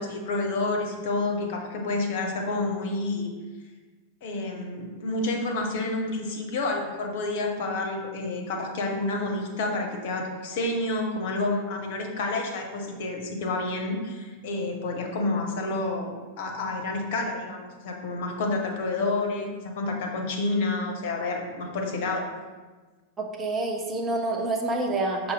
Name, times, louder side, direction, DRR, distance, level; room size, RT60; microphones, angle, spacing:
voice 1, 0.0-3.3 4.2-22.3, left 2 dB, 50° left, 2 dB, 0.6 m, -29 dB
voice 2, 23.2-25.3, right 2 dB, 20° right, 2 dB, 0.5 m, -27 dB
5.5 x 2.0 x 3.5 m, 1.3 s
figure-of-eight pair, 90°, 0 cm